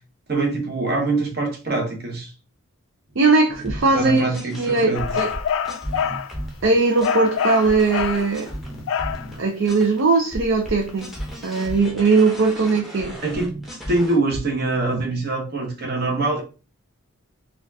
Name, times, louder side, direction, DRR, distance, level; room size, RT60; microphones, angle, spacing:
voice 1, 0.3-2.3 3.9-5.2 13.0-16.4, right 2 dB, 45° right, 1.0 m, -24 dB
voice 2, 3.2-4.3 4.6-5.3 6.6-8.5 9.4-11.1 11.4-13.1, right 3 dB, 60° right, 0.5 m, -19 dB
sound 1, 3.5-10.0 10.3-14.4, equal, ahead, 0.7 m, -35 dB
sound 2, 4.9-6.3 7.0-8.3 8.9-9.3, left 7 dB, 65° left, 0.3 m, -25 dB
4.1 x 2.4 x 2.7 m
head